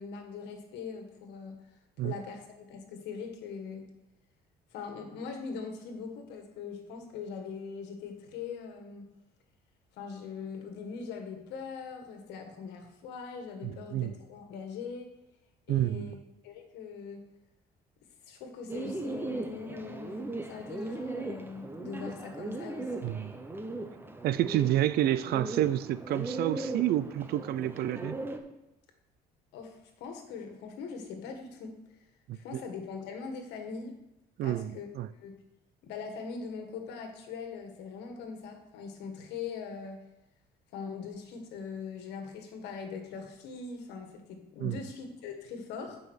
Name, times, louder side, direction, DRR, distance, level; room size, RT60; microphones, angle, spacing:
voice 1, 0.0-1.5 2.0-3.8 4.7-9.0 9.9-15.1 15.7-16.2 16.4-17.2 18.3-23.1 29.5-31.7 32.3-33.9 34.4-34.9 35.2-35.3 35.8-40.0 40.7-46.0, left 5 dB, 85° left, 5 dB, 1.6 m, -41 dB
voice 2, 13.6-14.1 15.7-16.2 23.0-23.3 24.2-28.2 32.3-32.6 34.4-35.1 44.6-44.8, right 13 dB, 65° right, 15 dB, 0.5 m, -29 dB
Bird, 18.7-28.4, right 2 dB, 15° right, 0.9 m, -38 dB
9.3 x 5.6 x 6.3 m, 0.93 s
cardioid pair, 110°, 17 cm